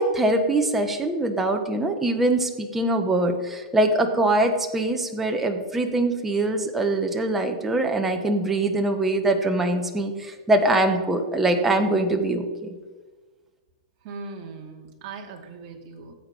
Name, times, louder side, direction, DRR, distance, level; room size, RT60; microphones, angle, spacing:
voice 1, 0.0-12.8, right 2 dB, 5° right, 4 dB, 1.1 m, -23 dB
voice 2, 14.0-16.1, right 4 dB, 35° right, 0 dB, 2.5 m, -39 dB
16.0 x 8.0 x 5.3 m, 1.3 s
supercardioid pair, 165°, 4 cm